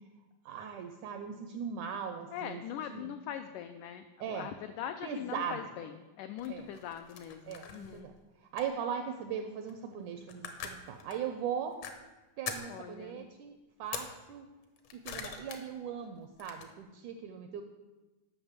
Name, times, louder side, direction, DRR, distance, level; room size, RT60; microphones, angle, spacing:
voice 1, 0.4-2.6 2.9-3.1 4.2-4.5 5.0-5.9 6.5-6.7 7.5-8.1 8.4-11.7 12.4-13.5 13.8-14.5 14.9-17.6, right 7 dB, 80° right, 6 dB, 1.7 m, -39 dB
voice 2, 2.3-5.9 6.2-8.1 12.7-13.3, left 10 dB, 85° left, 8 dB, 1.8 m, -41 dB
sound 1, 6.4-8.1 8.6-8.8 9.7-9.9 10.2-11.2 11.8-11.9 12.5-12.8 13.8-14.1 14.6-15.6 16.0-16.7, left 7 dB, 70° left, 1.6 m, -43 dB
8.9 x 6.0 x 8.0 m, 1.2 s
omnidirectional pair, 4.2 m